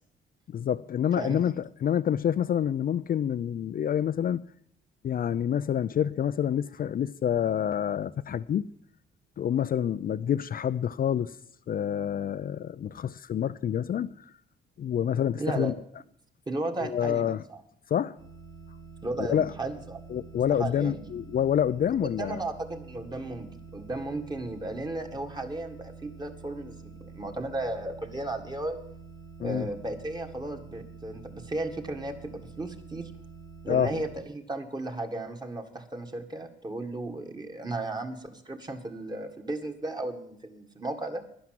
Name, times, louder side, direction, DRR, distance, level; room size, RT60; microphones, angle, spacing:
voice 1, 0.5-4.4 5.0-8.7 9.4-11.3 11.7-14.1 14.8-15.7 16.8-17.4 17.9-18.1 19.2-19.5 20.1-22.4 29.4-29.7 33.7-34.0, left 9 dB, 45° left, 0.5 m, -27 dB
voice 2, 15.3-15.7 16.5-17.6 19.0-20.0 20.6-21.0 22.2-23.5 23.7-28.8 29.4-33.1 33.6-41.2, right 2 dB, 20° right, 1.9 m, -35 dB
sound 1, 18.2-34.2, right 5 dB, 60° right, 2.9 m, -47 dB
11.5 x 10.5 x 7.8 m
cardioid pair, 90°, 20 cm